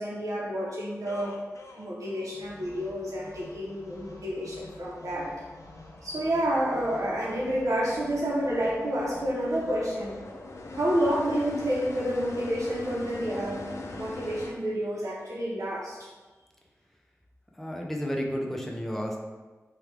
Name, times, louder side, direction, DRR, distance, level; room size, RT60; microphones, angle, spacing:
voice 1, 0.0-1.4 1.8-5.5 6.0-10.2 10.7-16.1, equal, 85° right, -5 dB, 0.8 m, -29 dB
sound 1, 1.1-14.5, left 2 dB, 75° left, 0.4 m, -43 dB
voice 2, 17.6-19.2, equal, 5° left, -1 dB, 0.5 m, -31 dB
3.1 x 2.3 x 3.3 m, 1.2 s
wide cardioid pair, 75°, 5 cm